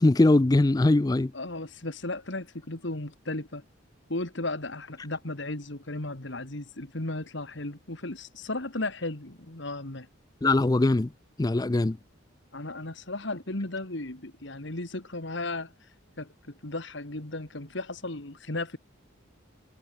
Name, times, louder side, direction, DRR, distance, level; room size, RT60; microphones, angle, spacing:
voice 1, 0.0-1.3 10.4-11.1 11.4-12.0, left 2 dB, 20° left, 0.4 m, -21 dB
voice 2, 1.3-3.6 4.1-10.1 12.5-15.7 16.2-18.8, left 2 dB, 60° left, 2.2 m, -35 dB
head